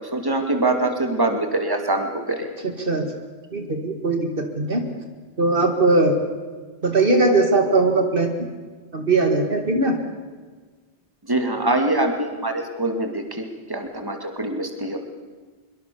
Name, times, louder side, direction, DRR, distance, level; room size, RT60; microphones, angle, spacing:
voice 1, 0.1-2.5 11.3-15.0, right 2 dB, 20° right, 5 dB, 2.6 m, -24 dB
voice 2, 2.6-3.1 3.5-4.9 5.4-6.2 6.8-8.3 8.9-10.0, right 2 dB, 60° right, 5 dB, 2.2 m, -20 dB
24.0 x 23.0 x 7.0 m, 1.4 s
omnidirectional pair, 1.1 m